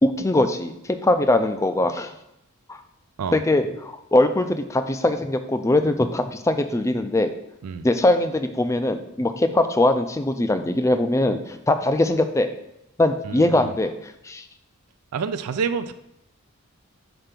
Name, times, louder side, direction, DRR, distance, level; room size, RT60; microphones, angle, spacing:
voice 1, 0.0-2.1 2.7-2.8 3.3-7.3 7.8-12.5 13.0-14.4, left 1 dB, 15° left, 9 dB, 0.3 m, -21 dB
voice 2, 13.2-13.7 15.1-15.9, right 6 dB, 90° right, 10 dB, 0.4 m, -28 dB
5.1 x 4.5 x 5.9 m, 0.84 s
head